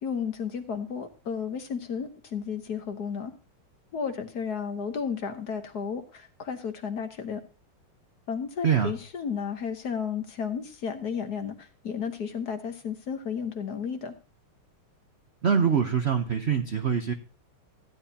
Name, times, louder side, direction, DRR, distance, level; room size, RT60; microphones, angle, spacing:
voice 1, 0.0-3.3 3.9-7.4 8.3-14.1, left 6 dB, 55° left, 7 dB, 1.5 m, -33 dB
voice 2, 8.6-8.9 15.4-17.1, right 7 dB, 65° right, 6 dB, 0.6 m, -24 dB
15.0 x 10.5 x 2.8 m, 0.33 s
omnidirectional pair, 2.3 m